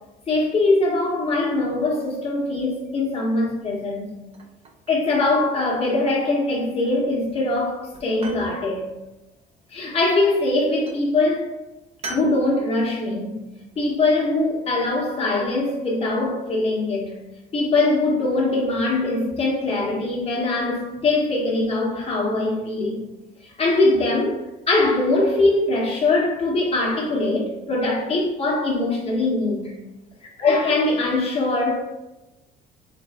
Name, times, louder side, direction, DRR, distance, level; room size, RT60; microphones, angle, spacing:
voice 1, 0.3-4.1 4.9-8.8 9.7-11.6 12.1-13.4 13.7-17.1 17.5-23.0 23.4-24.4 24.7-29.7 30.4-31.8, left 2 dB, 35° left, 1.6 m, -22 dB
sound 1, 4.3-5.1 5.4-6.1 6.9-7.3 7.6-8.5 9.9-10.5 10.9-11.1 12.0-12.4, right 3 dB, 35° right, 0.8 m, -39 dB
4.0 x 3.5 x 3.7 m
cardioid pair, 110°, 17 cm